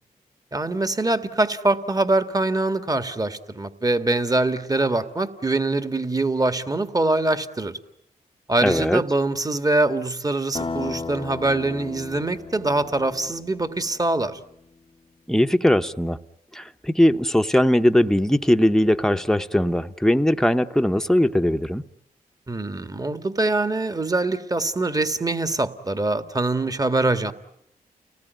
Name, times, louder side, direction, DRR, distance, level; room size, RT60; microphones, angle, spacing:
voice 1, 0.5-7.8 8.5-14.4 22.5-27.3, right 2 dB, 25° right, 1.8 m, -23 dB
voice 2, 8.6-9.0 15.3-16.2 16.5-21.8, left 1 dB, 5° left, 1.1 m, -20 dB
sound 1, 10.5-14.3, left 4 dB, 35° left, 0.9 m, -35 dB
29.5 x 19.0 x 9.3 m
cardioid pair, 60°, 16 cm